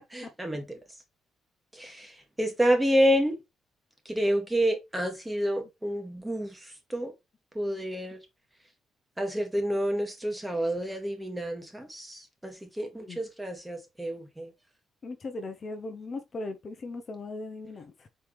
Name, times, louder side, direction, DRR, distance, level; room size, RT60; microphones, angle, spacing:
voice 1, 0.1-0.6 1.8-3.3 4.0-6.6 6.9-7.1 7.5-8.2 9.2-14.5, equal, 10° right, 1.6 m, -28 dB
voice 2, 15.0-18.1, left 2 dB, 45° left, 0.8 m, -38 dB
4.5 x 3.6 x 3.2 m
cardioid pair, 90°, 0 cm